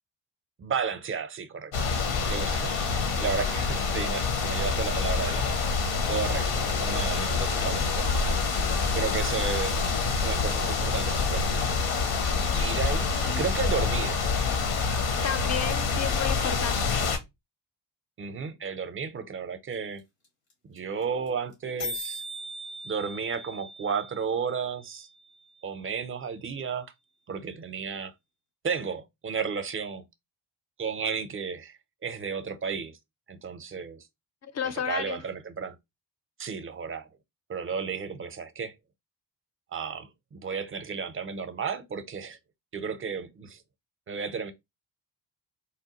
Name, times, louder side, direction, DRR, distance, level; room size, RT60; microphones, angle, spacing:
voice 1, 0.6-1.7 2.3-5.5 6.1-6.5 6.8-8.1 8.9-9.8 10.2-11.7 12.5-14.2 18.2-20.0 20.7-22.2 22.8-25.1 25.6-26.9 27.3-28.1 28.6-30.0 30.8-33.0 33.3-34.0 34.8-35.7 36.4-37.1 37.5-38.7 39.7-42.4 42.7-43.6 44.1-44.5, right 6 dB, 25° right, 0.6 m, -33 dB
sound 1, 1.7-17.2, left 4 dB, 70° left, 0.9 m, -27 dB
voice 2, 15.2-16.8 34.5-35.2, left 7 dB, 35° left, 0.5 m, -31 dB
sound 2, 19.7-19.8 20.0-20.1 20.2-20.5 20.8-20.9 21.0-21.3 21.5-21.6 21.8-25.8, equal, 85° left, 1.2 m, -40 dB
3.2 x 2.2 x 2.9 m
hypercardioid pair, 45°, 50 cm